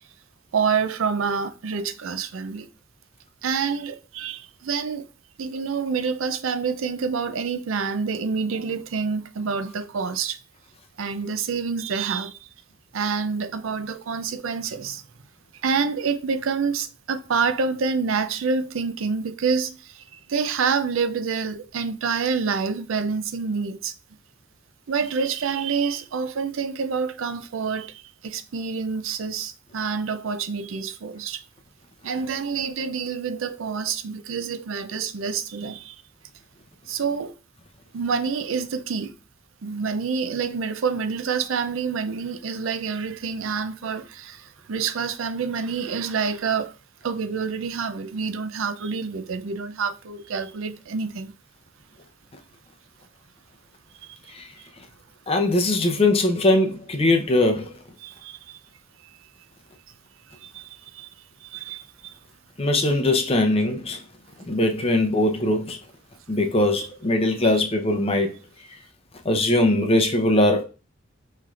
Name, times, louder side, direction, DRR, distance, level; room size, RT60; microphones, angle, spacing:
voice 1, 0.5-2.7 3.4-5.1 5.4-10.4 11.0-12.5 12.9-15.0 15.6-23.9 24.9-31.4 32.0-36.0 36.9-37.3 37.9-39.1 39.6-46.7 47.0-51.3 54.0-54.3 58.0-58.6 60.4-61.1 61.4-62.1 66.8-66.9 67.4-67.5, right 5 dB, 75° right, 0.5 m, -27 dB
voice 2, 55.3-57.7 62.6-64.0 64.5-65.8 66.3-68.3 69.2-70.6, left 1 dB, 30° left, 0.7 m, -21 dB
5.7 x 3.2 x 2.4 m
head